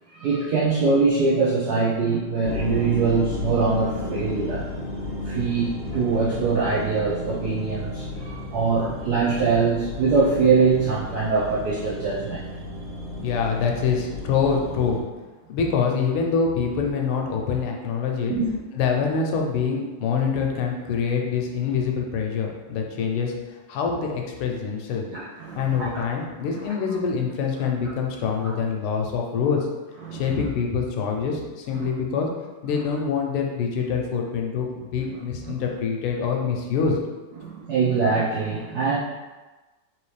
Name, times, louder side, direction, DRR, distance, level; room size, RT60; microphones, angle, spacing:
voice 1, 0.1-4.7 5.2-12.4 18.3-18.5 25.1-26.0 26.7-26.8 30.0-30.4 31.7-31.9 35.4-35.5 37.4-39.0, right 4 dB, 80° right, -7 dB, 0.9 m, -23 dB
sound 1, 2.4-15.0, left 1 dB, 55° right, 1.5 m, -33 dB
voice 2, 13.2-15.0 15.5-18.4 18.7-25.0 25.6-29.7 30.1-32.3 32.6-37.0, left 6 dB, 80° left, 1 dB, 1.5 m, -25 dB
4.0 x 3.0 x 3.2 m, 1.2 s
omnidirectional pair, 2.4 m